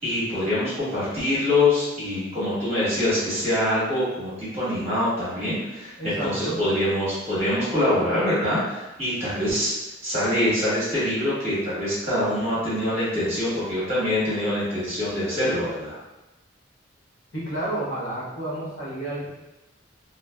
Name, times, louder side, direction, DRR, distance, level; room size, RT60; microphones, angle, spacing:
voice 1, 0.0-9.7 10.0-16.0, left 1 dB, 35° right, -10 dB, 1.2 m, -24 dB
voice 2, 6.0-6.6 17.3-19.3, right 1 dB, 75° left, -8 dB, 1.1 m, -30 dB
2.5 x 2.4 x 2.2 m, 0.98 s
head